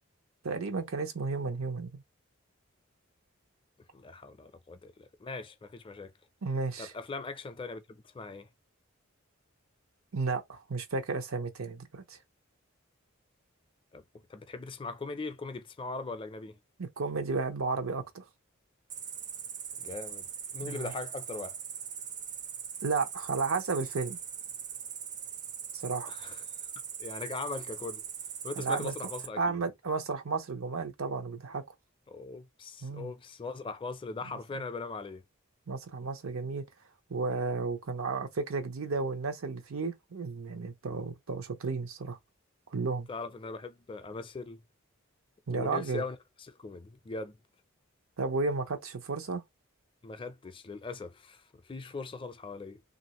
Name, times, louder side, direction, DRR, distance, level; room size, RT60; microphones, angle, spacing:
voice 1, 0.4-1.9 6.4-6.9 10.1-12.2 16.8-18.2 20.6-20.9 22.8-24.2 25.7-26.1 28.6-28.9 29.4-31.6 32.8-33.1 35.7-36.6 37.1-42.2 42.7-43.1 45.5-46.0 48.2-49.4, right 4 dB, 90° right, 0.7 m, -33 dB
voice 2, 3.9-6.1 6.8-8.5 13.9-14.0 14.3-16.6 19.8-20.3 20.5-21.6 26.0-26.7 27.0-28.0 28.4-29.6 32.1-35.2 43.1-44.6 45.5-47.4 50.0-52.8, left 3 dB, 25° left, 0.4 m, -40 dB
Cricket, 18.9-29.3, right 7 dB, 35° right, 0.4 m, -41 dB
3.1 x 2.5 x 2.9 m
head